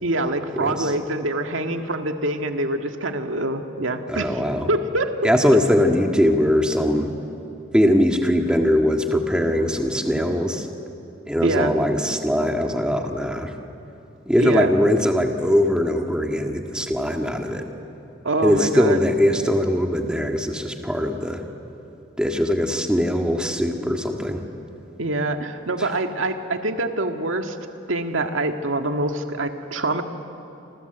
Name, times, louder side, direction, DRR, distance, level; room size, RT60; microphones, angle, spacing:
voice 1, 0.0-4.4 4.7-5.6 11.4-11.8 14.4-14.7 18.2-19.0 25.0-27.6 27.9-30.0, right 2 dB, 85° right, 5 dB, 1.9 m, -25 dB
voice 2, 0.5-0.9 4.1-4.7 5.2-7.1 7.7-10.7 11.3-13.5 14.3-17.6 18.4-21.4 22.2-24.4 25.8-25.9, equal, 5° right, 3 dB, 1.8 m, -21 dB
28.5 x 26.0 x 8.1 m, 2.8 s
head